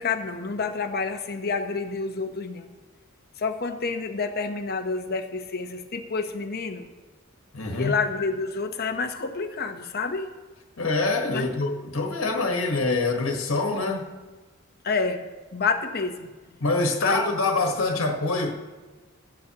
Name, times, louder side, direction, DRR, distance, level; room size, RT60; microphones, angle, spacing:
voice 1, 0.0-2.7 3.4-6.9 7.8-10.3 11.3-11.5 14.8-15.3 15.5-16.3 17.0-17.3, left 4 dB, 50° left, 0.9 m, -28 dB
voice 2, 7.5-7.9 10.8-14.1 16.6-18.5, left 3 dB, 85° left, 1.4 m, -25 dB
15.5 x 12.0 x 2.9 m
head